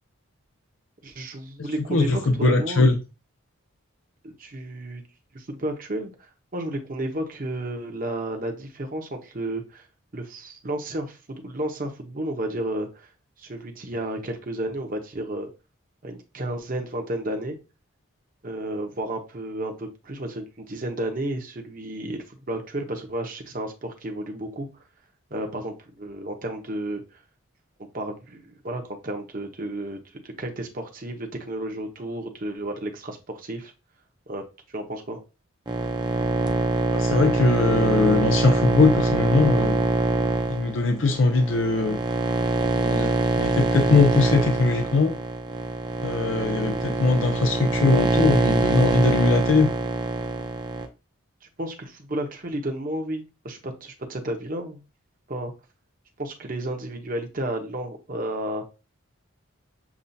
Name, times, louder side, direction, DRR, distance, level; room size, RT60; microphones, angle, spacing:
voice 1, 1.0-2.9 4.2-5.0 5.3-9.9 10.1-13.1 13.4-15.5 16.0-17.6 18.4-24.7 25.3-27.2 27.9-33.7 34.3-34.4 34.7-35.2 51.6-54.8 55.3-55.5 56.2-58.6, right 1 dB, 40° right, 4 dB, 0.8 m, -32 dB
voice 2, 1.9-3.0 36.9-39.8 40.5-42.0 42.8-45.1 46.0-49.7, left 3 dB, 65° left, 4 dB, 0.6 m, -21 dB
sound 1, 35.7-50.9, right 2 dB, 20° right, 0.5 m, -24 dB
7.1 x 2.4 x 2.7 m, 0.30 s
head